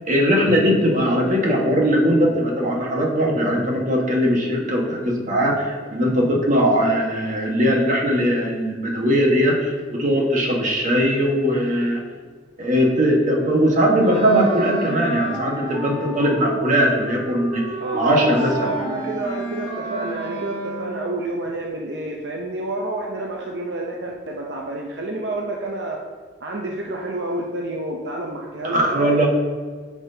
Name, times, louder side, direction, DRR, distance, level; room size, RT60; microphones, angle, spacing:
voice 1, 0.1-12.0 12.6-17.6 18.0-18.7 28.6-29.3, equal, 45° right, -1 dB, 1.4 m, -20 dB
Wind instrument woodwind instrument, 14.0-21.1, right 1 dB, 25° right, 1.5 m, -31 dB
voice 2, 17.8-26.0 26.4-29.1, right 2 dB, 70° right, 0 dB, 0.7 m, -29 dB
9.6 x 6.0 x 2.8 m, 1.5 s
head